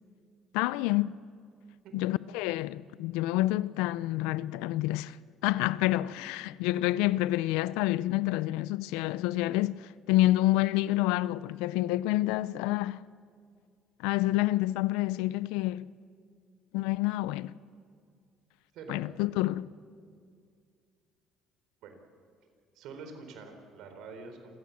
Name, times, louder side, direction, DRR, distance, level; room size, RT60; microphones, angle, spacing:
voice 1, 0.5-1.2 1.9-5.2 5.4-13.0 14.0-15.9 16.7-17.5 18.9-19.7, left 16 dB, 90° left, 0.5 m, -28 dB
voice 2, 22.7-24.6, right 4 dB, 75° right, 4.4 m, -45 dB
28.0 x 17.0 x 7.2 m
supercardioid pair, 90°, 0 cm